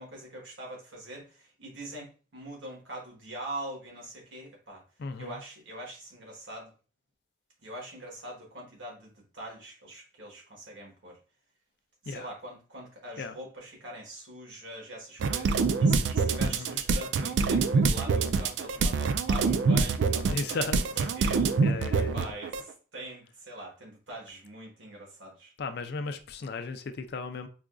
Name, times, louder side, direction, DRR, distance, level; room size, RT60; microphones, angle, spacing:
voice 1, 0.0-4.8 5.2-6.7 7.6-11.2 12.0-21.6 21.9-25.5, right 1 dB, 85° right, 1.4 m, -43 dB
voice 2, 5.0-5.4 12.1-12.3 13.2-13.4 16.4-16.8 20.3-20.8 21.6-22.3 25.6-27.5, left 4 dB, 55° left, 0.4 m, -35 dB
sound 1, 15.2-22.6, right 4 dB, 70° right, 0.3 m, -25 dB
4.9 x 2.4 x 2.2 m
head